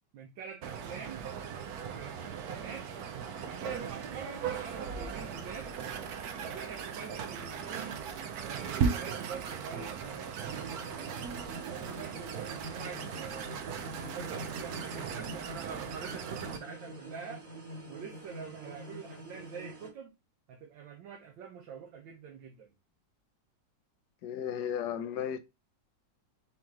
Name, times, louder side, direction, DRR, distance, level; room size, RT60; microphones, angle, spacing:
voice 1, 0.1-1.2 1.9-2.9 3.4-5.7 6.4-8.0 8.4-11.1 11.8-13.6 14.1-17.4 17.9-20.1 20.5-22.7, right 6 dB, 85° right, 1.5 m, -45 dB
sound 1, 0.6-16.6, right 6 dB, 65° right, 1.0 m, -38 dB
sound 2, 10.4-19.9, right 1 dB, 20° right, 1.4 m, -45 dB
voice 2, 24.2-25.4, left 9 dB, 70° left, 1.1 m, -34 dB
4.4 x 3.0 x 3.6 m
omnidirectional pair, 2.0 m